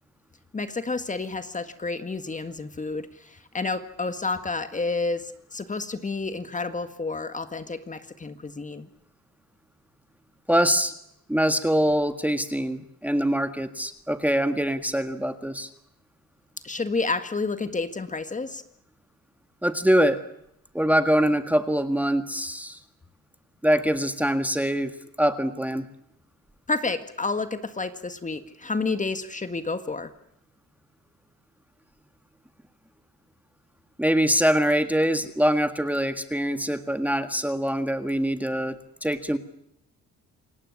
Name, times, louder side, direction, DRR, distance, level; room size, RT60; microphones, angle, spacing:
voice 1, 0.5-8.9 16.6-18.6 26.7-30.1, left 3 dB, 25° left, 10 dB, 1.8 m, -30 dB
voice 2, 10.5-10.9 11.3-15.7 19.6-20.2 20.7-22.8 23.6-25.9 34.0-39.4, equal, 5° right, 9 dB, 1.7 m, -24 dB
28.0 x 17.5 x 9.8 m, 0.78 s
cardioid pair, 90°, 30 cm